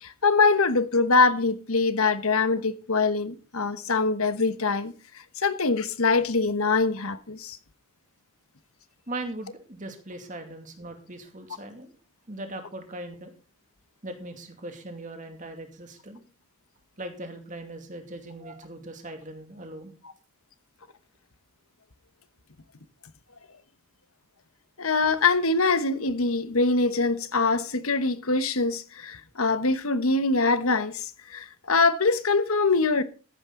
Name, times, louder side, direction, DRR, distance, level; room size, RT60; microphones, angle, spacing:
voice 1, 0.0-7.6 24.8-33.0, left 3 dB, 75° left, 1.2 m, -24 dB
voice 2, 9.1-11.9 12.3-13.3 14.0-16.2 17.0-19.9, right 2 dB, 35° right, 2.4 m, -39 dB
14.5 x 10.5 x 3.9 m
head